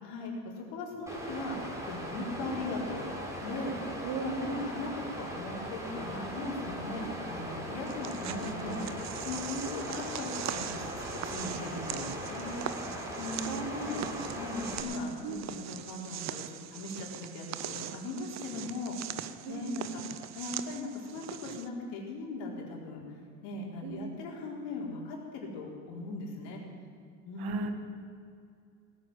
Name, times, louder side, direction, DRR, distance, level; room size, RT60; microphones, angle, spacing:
voice 1, 0.0-3.1 3.4-14.0 14.4-20.0 20.3-23.0 23.4-26.6 27.2-27.5, left 2 dB, 55° left, -1 dB, 4.1 m, -39 dB
Water, 1.1-14.8, equal, 5° right, 3.7 m, -39 dB
voice 2, 4.0-4.5 7.0-7.2 13.5-14.4 15.2-15.4 19.4-19.9 23.8-24.0 27.4-27.7, right 5 dB, 50° right, 6 dB, 2.0 m, -37 dB
sound 1, 7.9-21.7, right 11 dB, 35° right, 0.8 m, -41 dB
17.0 x 9.6 x 7.6 m, 2.3 s
hypercardioid pair, 90°, 46 cm